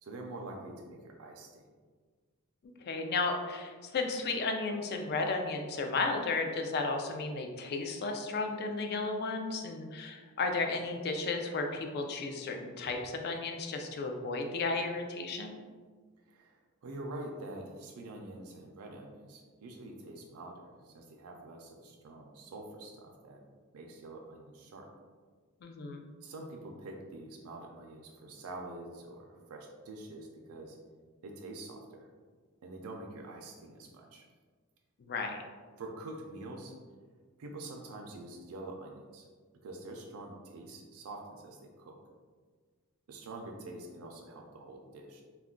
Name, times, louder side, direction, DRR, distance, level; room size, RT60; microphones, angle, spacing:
voice 1, 0.0-1.7 16.3-23.4 23.7-24.9 26.2-30.8 31.2-32.1 32.6-34.3 35.8-36.8 37.4-39.3 39.6-42.0 43.1-45.2, right 2 dB, 75° right, 1 dB, 0.4 m, -46 dB
voice 2, 2.9-15.6 25.6-26.1 35.0-35.4, left 3 dB, 50° left, 4 dB, 0.3 m, -34 dB
2.3 x 2.2 x 3.6 m, 1.5 s
head